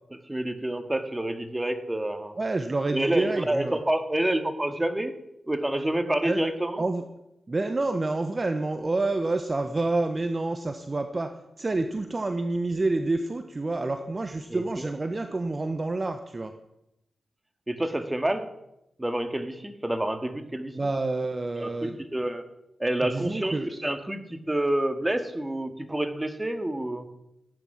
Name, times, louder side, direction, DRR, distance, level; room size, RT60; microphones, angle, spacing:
voice 1, 0.3-2.3 2.9-5.1 5.4-6.8 14.5-14.9 17.7-18.5 19.0-20.7 21.6-22.4 22.8-27.1, right 1 dB, 20° right, 8 dB, 2.1 m, -28 dB
voice 2, 2.4-3.8 6.2-6.4 6.8-7.0 7.5-16.5 20.7-22.0 23.1-23.7, right 2 dB, 40° right, 8 dB, 1.1 m, -28 dB
17.0 x 9.7 x 5.9 m, 0.85 s
cardioid pair, 45°, 0 cm